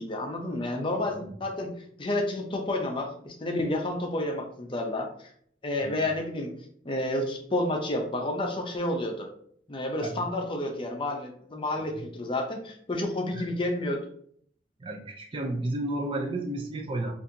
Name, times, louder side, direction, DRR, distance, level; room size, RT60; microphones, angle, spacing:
voice 1, 0.0-1.7 2.0-5.3 5.6-6.5 6.8-9.3 9.7-14.0, left 1 dB, 30° left, 2 dB, 0.5 m, -30 dB
voice 2, 14.8-17.1, right 1 dB, 30° right, 2 dB, 0.4 m, -32 dB
4.2 x 2.6 x 2.6 m, 0.62 s
head